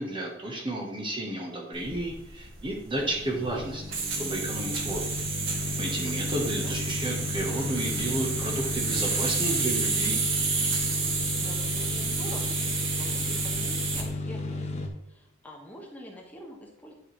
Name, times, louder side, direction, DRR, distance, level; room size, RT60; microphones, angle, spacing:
voice 1, 0.0-3.8 4.2-5.0 5.8-10.2, right 1 dB, 25° right, -1 dB, 1.2 m, -32 dB
sound 1, 1.7-14.1, right 4 dB, 90° right, 1.6 m, -30 dB
sound 2, 3.0-14.9, left 2 dB, 35° left, 1.1 m, -34 dB
voice 2, 6.0-6.8 11.4-16.9, equal, 10° left, -2 dB, 1.5 m, -46 dB
10.5 x 4.8 x 3.2 m, 0.91 s
head